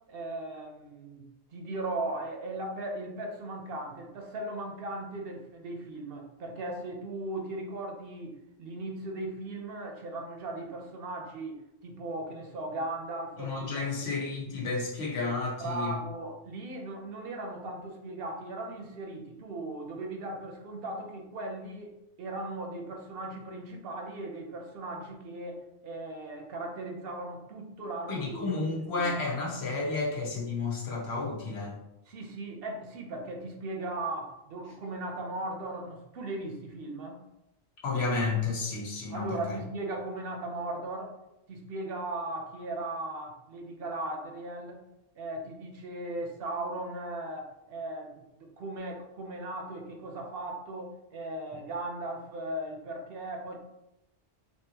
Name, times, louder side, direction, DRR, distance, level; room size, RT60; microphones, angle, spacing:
voice 1, 0.1-1.3 1.5-13.8 15.6-21.9 22.2-29.1 32.1-37.2 39.1-41.1 41.5-44.8 45.2-53.6, right 2 dB, 65° right, 2 dB, 0.8 m, -38 dB
voice 2, 13.4-16.0 28.1-31.8 37.8-39.6, left 3 dB, 70° left, -2 dB, 1.1 m, -31 dB
3.6 x 2.7 x 2.8 m, 0.88 s
omnidirectional pair, 1.1 m